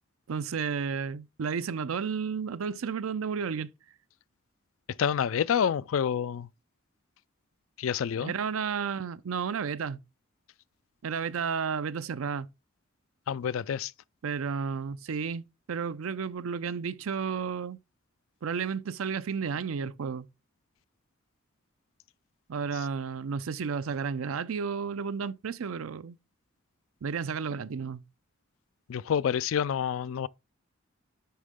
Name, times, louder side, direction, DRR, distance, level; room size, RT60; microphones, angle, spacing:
voice 1, 0.3-3.7 8.2-10.0 11.0-12.5 14.2-17.8 18.4-20.3 22.5-26.2 27.0-28.0, right 6 dB, 85° right, 0.5 m, -32 dB
voice 2, 5.0-6.5 7.8-8.3 13.3-13.9 28.9-30.3, left 8 dB, 75° left, 0.4 m, -28 dB
10.5 x 3.7 x 3.5 m
head